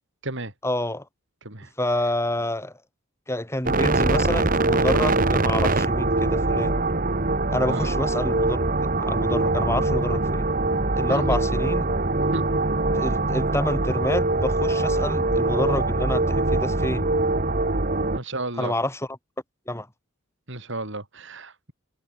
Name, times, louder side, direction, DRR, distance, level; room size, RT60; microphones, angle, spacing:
voice 1, 0.6-1.1 1.8-2.8 3.3-6.7 7.5-8.6 9.0-10.5 10.9-11.9 12.9-17.1 18.6-19.2 19.7-19.9, left 1 dB, 10° left, 4.8 m, -28 dB
sound 1, 3.7-18.2, right 2 dB, 40° right, 1.6 m, -23 dB
voice 2, 18.1-18.7 20.5-21.7, right 2 dB, 55° right, 4.3 m, -33 dB
head